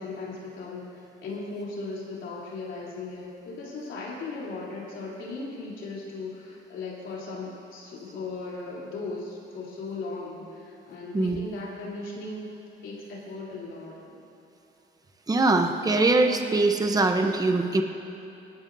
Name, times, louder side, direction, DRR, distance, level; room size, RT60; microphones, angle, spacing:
voice 1, 0.0-12.6 12.8-14.2, left 3 dB, 75° left, -5 dB, 3.3 m, -37 dB
voice 2, 15.3-17.8, right 2 dB, 20° right, 5 dB, 0.8 m, -22 dB
18.5 x 13.0 x 2.7 m, 3.0 s
cardioid pair, 90°, 20 cm